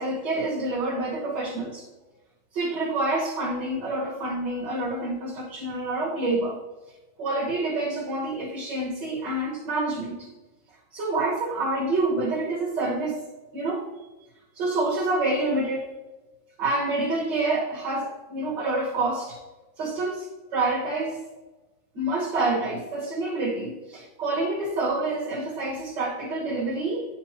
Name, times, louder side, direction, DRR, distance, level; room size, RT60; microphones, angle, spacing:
voice 1, 0.0-1.8 2.5-6.6 7.2-10.3 10.9-13.2 13.5-13.8 14.6-15.9 16.6-19.4 19.8-20.3 20.5-21.2 22.0-27.1, right 2 dB, 60° right, -4 dB, 1.8 m, -27 dB
10.0 x 4.5 x 2.9 m, 1.1 s
omnidirectional pair, 2.2 m